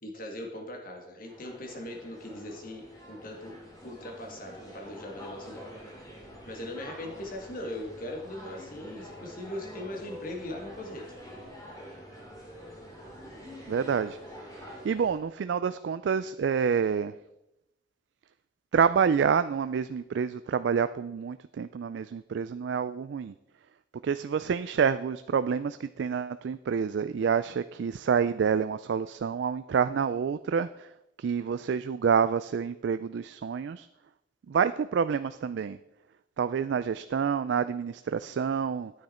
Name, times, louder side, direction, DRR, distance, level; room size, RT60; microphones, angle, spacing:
voice 1, 0.0-3.5 3.8-5.8 6.5-11.1, left 1 dB, 50° left, 1 dB, 1.9 m, -40 dB
sound 1, 1.2-15.2, equal, 20° left, 2.4 m, -46 dB
voice 2, 13.7-14.2 14.5-17.1 18.7-23.3 24.0-30.9 31.2-33.9 34.5-35.8 36.4-38.9, right 6 dB, 65° right, 12 dB, 0.3 m, -28 dB
9.5 x 9.2 x 4.3 m, 0.88 s
head